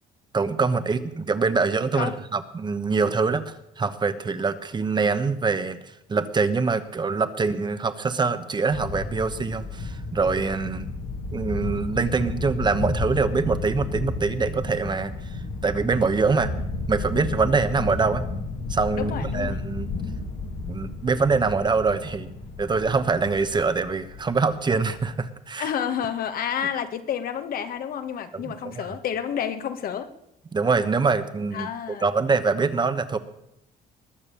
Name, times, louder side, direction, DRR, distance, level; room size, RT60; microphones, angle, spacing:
voice 1, 0.3-5.8 6.1-10.9 11.3-16.5 16.9-18.2 18.7-19.9 20.7-22.3 22.6-25.7 28.3-28.8 30.5-31.7 32.0-33.2, right 4 dB, 25° right, 11 dB, 1.0 m, -24 dB
sound 1, 8.7-25.1, left 3 dB, 75° left, 2.4 m, -32 dB
voice 2, 18.9-19.5 25.6-30.1 31.5-32.1, left 8 dB, 60° left, 9 dB, 1.4 m, -29 dB
20.5 x 6.9 x 7.0 m, 0.79 s
cardioid pair, 110°, 17 cm